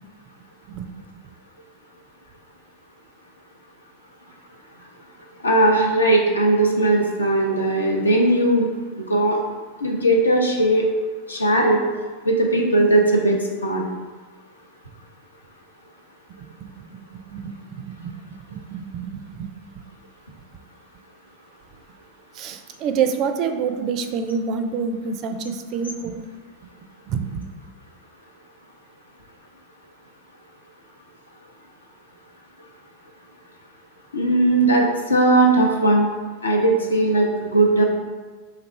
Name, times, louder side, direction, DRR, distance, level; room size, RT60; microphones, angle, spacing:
voice 1, 5.4-8.7 9.0-9.4 9.8-10.8 11.3-11.8 12.2-13.4 13.6-13.8 34.1-36.1 36.4-37.8, right 1 dB, 75° left, 0 dB, 0.7 m, -18 dB
voice 2, 16.6-17.0 17.3-18.1 18.5-19.5 19.8-19.9 22.3-26.2 27.1-27.5, right 6 dB, 35° right, 7 dB, 0.4 m, -27 dB
4.1 x 2.6 x 4.3 m, 1.4 s
figure-of-eight pair, 90°, 0 cm